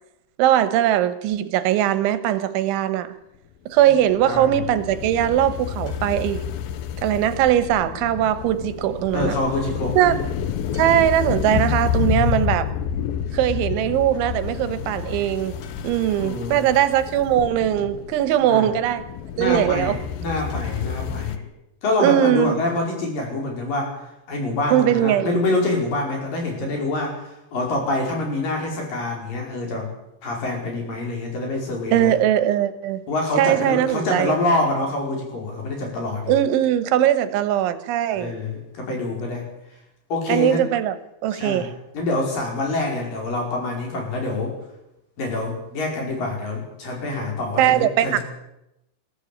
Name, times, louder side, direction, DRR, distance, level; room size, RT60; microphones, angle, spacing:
voice 1, 0.4-3.2 3.7-6.4 7.0-9.4 10.0-10.2 10.7-12.7 13.3-15.5 15.8-19.1 19.4-20.0 22.0-22.6 24.7-25.3 31.9-33.0 33.4-34.4 36.3-38.3 40.3-41.0 41.2-41.7 47.6-48.2, right 11 dB, 90° right, 13 dB, 3.6 m, -20 dB
sound 1, 3.8-21.4, left 9 dB, 70° left, 2.4 m, -29 dB
voice 2, 4.2-4.6 9.1-10.3 13.3-13.4 16.2-16.7 18.5-18.7 19.4-21.5 21.8-23.9 24.3-29.9 30.2-32.1 33.1-36.3 38.1-39.5 40.1-40.6 41.3-44.6 45.2-48.2, left 2 dB, 50° left, 1 dB, 6.6 m, -26 dB
21.5 x 14.5 x 8.6 m, 0.87 s
omnidirectional pair, 5.3 m